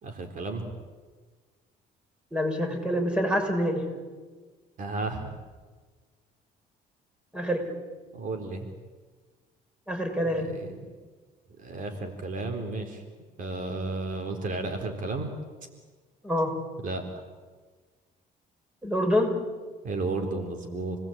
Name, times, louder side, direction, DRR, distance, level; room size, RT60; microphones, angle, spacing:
voice 1, 0.0-0.7 4.8-5.3 8.1-8.7 10.3-10.9 11.6-13.0 13.4-15.3 16.8-17.0 19.8-21.0, right 3 dB, 50° right, 4 dB, 3.9 m, -33 dB
voice 2, 2.3-3.8 7.3-7.7 9.9-10.5 16.2-16.5 18.8-19.4, equal, 5° right, 4 dB, 6.4 m, -26 dB
29.5 x 20.0 x 8.9 m, 1.4 s
cardioid pair, 110°, 17 cm